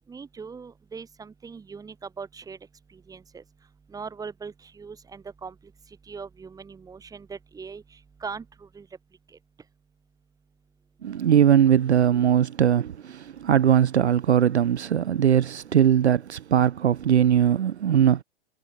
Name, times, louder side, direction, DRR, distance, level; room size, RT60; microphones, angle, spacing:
voice 1, 0.1-2.6 3.1-3.4 3.9-5.5 6.1-7.8 8.2-8.9, right 5 dB, 10° right, 3.7 m, -40 dB
voice 2, 11.0-18.2, right 9 dB, 70° right, 0.6 m, -20 dB
figure-of-eight pair, 110°, 34 cm